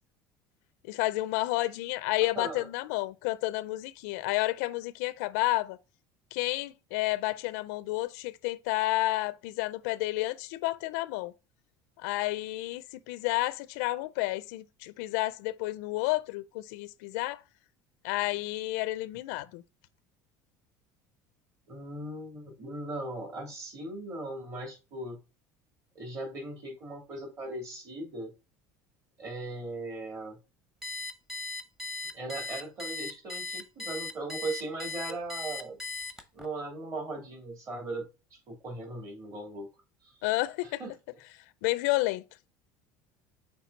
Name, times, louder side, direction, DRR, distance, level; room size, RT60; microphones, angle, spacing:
voice 1, 0.9-5.8 6.3-11.3 12.0-17.4 18.0-19.6 40.2-40.8 41.6-42.2, left 18 dB, 85° left, 0.4 m, -30 dB
voice 2, 2.2-2.7 21.7-25.2 25.9-28.3 29.2-30.4 32.1-35.8 36.3-38.0 38.3-39.7 40.0-40.1 40.8-40.9, right 2 dB, 40° right, 2.9 m, -38 dB
Alarm, 30.8-36.5, left 3 dB, 5° right, 0.8 m, -38 dB
5.9 x 4.4 x 4.0 m
cardioid pair, 130°, 9 cm